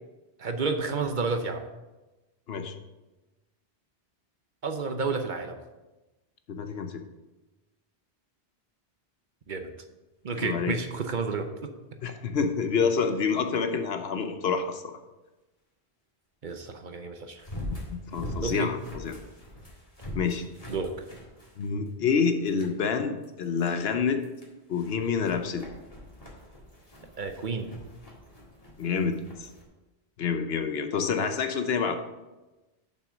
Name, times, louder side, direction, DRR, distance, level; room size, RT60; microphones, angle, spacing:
voice 1, 0.4-1.6 4.6-5.6 9.5-9.7 10.2-11.7 16.4-17.5 18.4-18.7 20.7-20.9 27.2-27.7, right 4 dB, 50° right, 6 dB, 0.8 m, -30 dB
voice 2, 6.5-7.0 10.4-10.7 12.0-15.0 17.9-19.1 20.1-20.5 21.6-24.2 24.7-25.7 28.8-29.5 30.2-32.0, left 6 dB, 70° left, 7 dB, 1.0 m, -28 dB
sound 1, 17.4-22.1 22.5-22.8 23.2-23.7 24.2-29.6, left 1 dB, 35° left, 2.0 m, -42 dB
6.9 x 5.9 x 6.2 m, 1.1 s
omnidirectional pair, 1.1 m